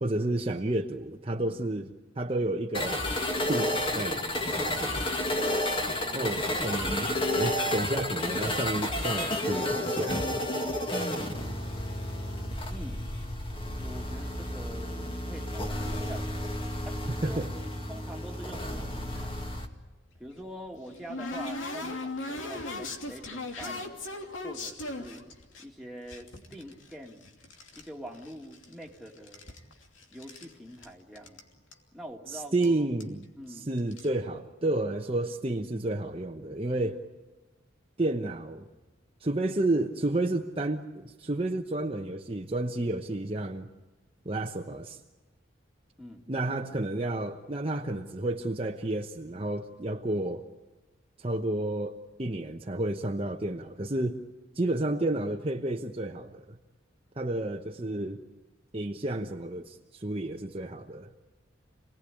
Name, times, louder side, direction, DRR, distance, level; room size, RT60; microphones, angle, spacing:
voice 1, 0.0-3.1 3.4-5.0 6.1-10.3 17.2-17.5 32.3-37.0 38.0-38.7 39.2-43.7 44.2-45.0 46.3-50.4 51.2-54.2 54.5-56.5 57.2-58.2 58.7-61.1, right 2 dB, 30° right, 2 dB, 1.0 m, -31 dB
sound 1, 2.7-19.7, left 1 dB, 25° left, 2.2 m, -31 dB
voice 2, 5.9-6.4 12.7-13.0 13.7-16.2 16.9-17.4 17.8-19.4 20.2-23.8 24.4-25.2 25.6-27.3 27.7-29.4 30.1-31.5 31.9-32.7 33.4-33.7 46.0-46.2, equal, ahead, -1 dB, 2.4 m, -45 dB
sound 2, 20.2-25.6 26.1-27.9 28.1-28.9 29.2-30.5 30.8-30.9 31.2-31.4 31.7-31.8 32.6-32.7 33.0-33.2 33.8-34.1, left 2 dB, 90° left, 2.9 m, -38 dB
28.0 x 19.0 x 10.0 m, 1.2 s
head